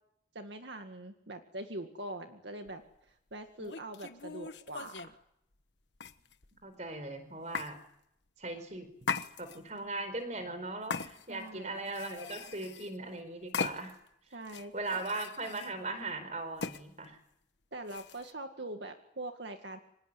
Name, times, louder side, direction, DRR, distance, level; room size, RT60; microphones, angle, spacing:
voice 1, 0.3-5.2 11.3-11.8 14.3-15.0 17.7-19.8, right 1 dB, 70° right, 5 dB, 2.0 m, -43 dB
sound 1, 2.7-2.8 3.6-5.2 6.0-6.6 7.5-7.7 9.0-9.8 10.9-11.5 11.9-13.0 13.5-14.1 14.5-15.7 16.6-16.8 17.9-18.3, left 5 dB, 75° left, 1.3 m, -39 dB
voice 2, 6.6-7.8 8.4-13.9 14.7-17.2, right 2 dB, 40° right, 10 dB, 4.6 m, -39 dB
25.5 x 19.5 x 9.8 m, 0.76 s
head